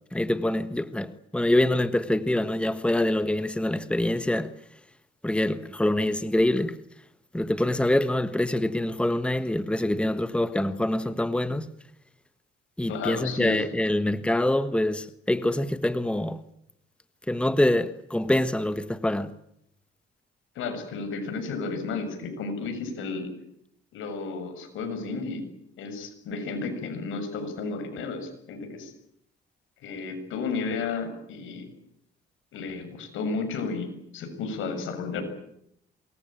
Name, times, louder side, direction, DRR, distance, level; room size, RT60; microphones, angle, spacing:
voice 1, 0.1-4.5 5.2-6.8 7.3-11.7 12.8-16.4 17.3-19.3, left 1 dB, 5° left, 1.3 m, -25 dB
voice 2, 12.9-13.6 20.6-23.3 23.9-25.4 25.8-28.9 29.8-31.7 32.5-33.9 34.1-35.2, left 4 dB, 85° left, 6.9 m, -32 dB
25.0 x 21.5 x 8.9 m
cardioid pair, 90°, 20 cm